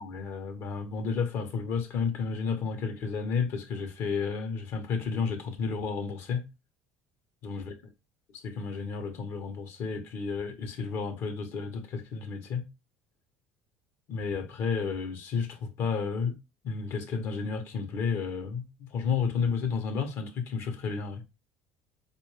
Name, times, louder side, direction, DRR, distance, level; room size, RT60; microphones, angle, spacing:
voice 1, 0.0-6.4 7.4-7.7 8.4-12.7 14.1-16.4 16.6-21.2, left 5 dB, 60° left, 1.0 m, -32 dB
4.4 x 2.6 x 3.2 m
hypercardioid pair, 70°, 5 cm